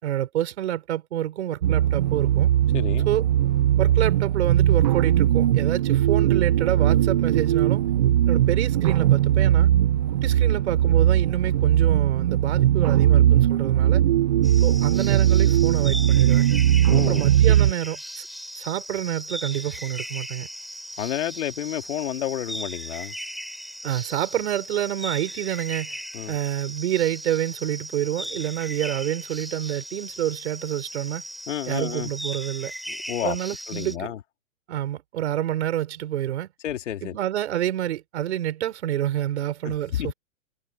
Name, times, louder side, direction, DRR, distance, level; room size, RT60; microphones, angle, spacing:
voice 1, 0.0-2.5 3.1-3.2 3.8-7.8 8.3-9.7 10.1-14.0 14.6-16.5 17.0-18.3 18.5-20.5 23.8-26.0 26.3-31.2 31.7-32.7 33.2-34.1 34.7-36.5 37.0-40.1, right 12 dB, 55° right, 5.3 m, -28 dB
sound 1, 1.6-17.7, right 11 dB, 35° right, 0.5 m, -19 dB
voice 2, 2.7-3.1 16.9-17.5 21.0-23.1 26.1-26.4 31.5-32.1 32.9-33.4 33.7-34.2 36.6-37.2 39.6-40.1, left 11 dB, 60° left, 2.8 m, -30 dB
sound 2, 14.4-34.0, equal, ahead, 3.6 m, -37 dB
open air
hypercardioid pair, 155°, 40 cm